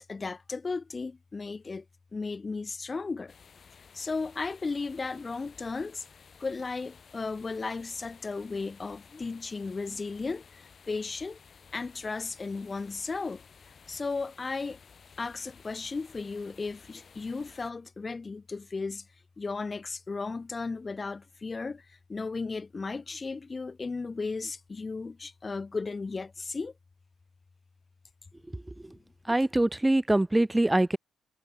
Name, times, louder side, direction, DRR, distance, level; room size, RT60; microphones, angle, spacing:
voice 1, 0.0-1.8 2.1-3.3 3.9-6.0 6.4-11.4 11.7-13.4 13.9-14.8 15.2-19.1 19.4-26.7, left 4 dB, 30° left, 0.7 m, -35 dB
sound 1, 3.3-17.7, left 6 dB, 45° left, 5.0 m, -55 dB
voice 2, 29.3-31.0, right 1 dB, 10° right, 0.3 m, -23 dB
cardioid pair, 90°, 0 cm